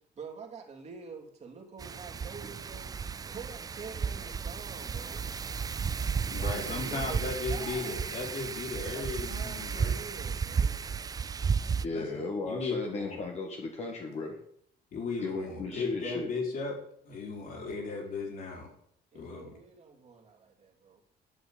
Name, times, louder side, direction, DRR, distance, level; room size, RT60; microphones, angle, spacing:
voice 1, 0.2-2.9 3.3-5.3 6.2-8.0 8.9-10.8 17.4-18.3 19.1-21.0, right 5 dB, 40° right, 1 dB, 2.8 m, -47 dB
Wind, 1.8-11.8, right 6 dB, 20° right, 0.3 m, -33 dB
voice 2, 6.3-10.0 11.9-13.2 14.9-16.8 17.0-18.7 19.1-19.6, left 4 dB, 55° left, -1 dB, 4.6 m, -36 dB
voice 3, 11.8-14.4 15.2-16.3, left 3 dB, 40° left, 1 dB, 1.8 m, -36 dB
11.0 x 6.1 x 8.9 m, 0.69 s
cardioid pair, 140°, 17 cm